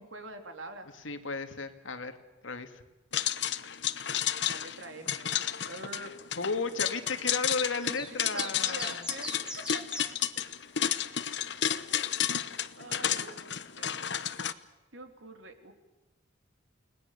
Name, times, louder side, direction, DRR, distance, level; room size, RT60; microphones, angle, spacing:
voice 1, 0.0-0.9 4.4-5.3 5.7-6.1 8.1-9.8 11.9-12.2 12.8-14.0 14.9-15.7, right 2 dB, 80° right, 5 dB, 3.7 m, -45 dB
voice 2, 1.0-2.1 2.4-2.8 6.3-9.1, left 3 dB, 90° left, 7 dB, 2.4 m, -34 dB
sound 1, 3.1-14.5, left 10 dB, 65° left, 1.1 m, -32 dB
sound 2, 7.8-10.1, equal, 5° right, 2.3 m, -40 dB
30.0 x 20.0 x 6.9 m, 1.1 s
head